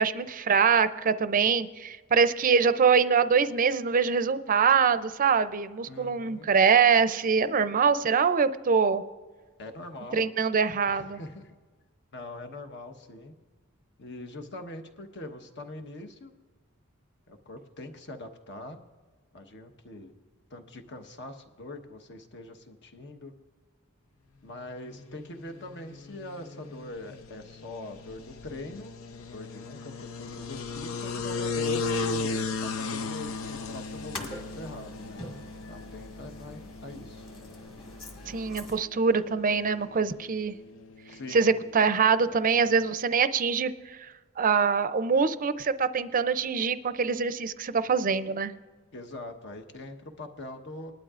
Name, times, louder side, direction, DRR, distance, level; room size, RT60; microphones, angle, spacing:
voice 1, 0.0-9.0 10.1-11.2 38.3-40.5 41.3-43.7 44.4-48.5, right 6 dB, 40° right, 13 dB, 0.5 m, -24 dB
voice 2, 5.9-6.5 9.6-10.3 10.9-11.5 12.1-13.3 14.0-16.3 17.3-18.8 19.3-20.1 20.5-23.3 24.4-28.9 29.3-35.2 35.7-37.3 41.1-41.5 48.9-50.9, left 2 dB, 60° left, 6 dB, 1.2 m, -43 dB
sound 1, 24.9-42.9, left 4 dB, 90° left, 0.6 m, -37 dB
sound 2, 33.2-38.8, left 1 dB, 25° left, 1.9 m, -44 dB
20.0 x 12.0 x 2.5 m, 1.4 s
head